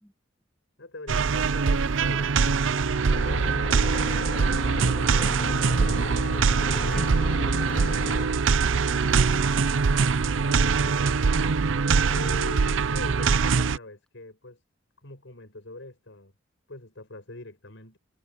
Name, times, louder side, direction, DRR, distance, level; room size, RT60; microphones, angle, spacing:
voice 1, 0.8-4.7 10.5-11.2 12.1-14.6 15.0-16.3 16.7-18.0, left 2 dB, 80° left, 4.9 m, -43 dB
sound 1, 1.1-13.8, right 5 dB, 85° right, 0.6 m, -23 dB
sound 2, 3.1-8.3, left 3 dB, 45° left, 0.7 m, -35 dB
voice 2, 5.3-6.0 6.8-7.1 7.4-7.7 9.0-9.6, equal, 5° left, 1.5 m, -41 dB
head